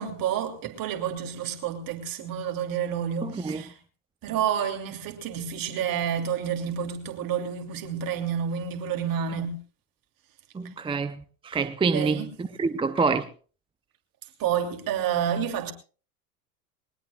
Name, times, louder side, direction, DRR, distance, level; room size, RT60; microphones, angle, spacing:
voice 1, 0.0-3.7 4.2-9.6 11.9-12.3 14.4-15.7, right 8 dB, 45° right, 3.0 m, -29 dB
voice 2, 3.2-3.6 9.3-9.4 10.5-13.3, right 4 dB, 10° right, 0.6 m, -27 dB
21.5 x 19.5 x 2.4 m
hypercardioid pair, 85°, 47 cm